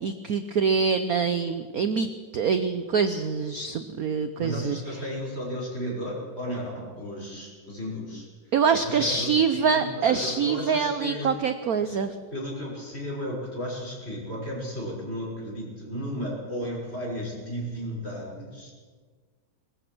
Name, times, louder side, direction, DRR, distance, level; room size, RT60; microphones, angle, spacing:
voice 1, 0.0-2.1 2.3-4.8 8.5-12.1, right 5 dB, 55° right, 10 dB, 1.1 m, -25 dB
voice 2, 4.4-8.3 8.8-11.4 12.3-18.7, equal, 30° left, -2 dB, 6.3 m, -34 dB
22.0 x 20.5 x 6.2 m, 1.5 s
omnidirectional pair, 2.3 m